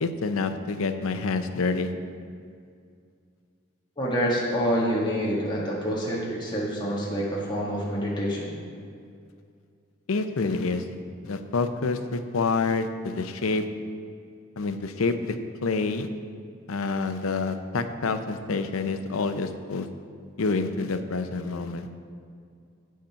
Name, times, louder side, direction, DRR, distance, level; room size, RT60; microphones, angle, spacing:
voice 1, 0.0-1.9 10.1-10.8 11.2-13.6 14.6-15.4 15.6-16.1 16.7-19.9 20.4-22.0, left 4 dB, 85° left, 9 dB, 0.6 m, -27 dB
voice 2, 4.0-8.5, equal, 20° left, -5 dB, 1.5 m, -27 dB
8.6 x 6.4 x 5.7 m, 2.3 s
head